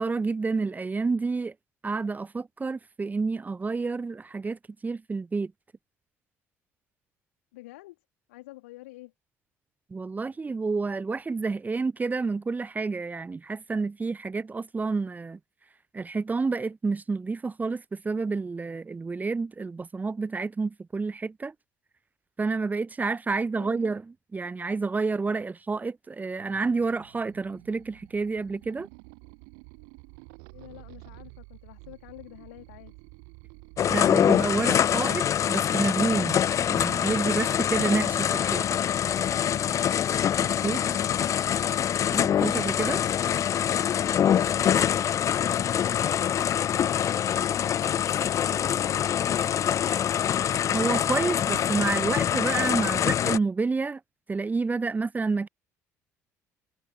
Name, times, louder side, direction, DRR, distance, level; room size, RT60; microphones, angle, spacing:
voice 1, 0.0-1.5 1.8-5.5 9.9-15.4 15.9-21.5 22.4-24.1 24.3-28.9 33.9-36.4 36.7-38.8 40.6-40.8 42.1-43.0 50.7-54.0 54.3-55.5, right 4 dB, 20° right, 0.7 m, -29 dB
voice 2, 7.5-8.0 8.3-9.1 23.5-23.8 30.5-32.9, left 19 dB, 70° left, 3.1 m, -48 dB
sound 1, 26.4-34.3, right 40 dB or more, 65° right, 7.9 m, -50 dB
sound 2, 33.8-53.4, left 9 dB, 40° left, 0.5 m, -25 dB
figure-of-eight pair, 55°, 8 cm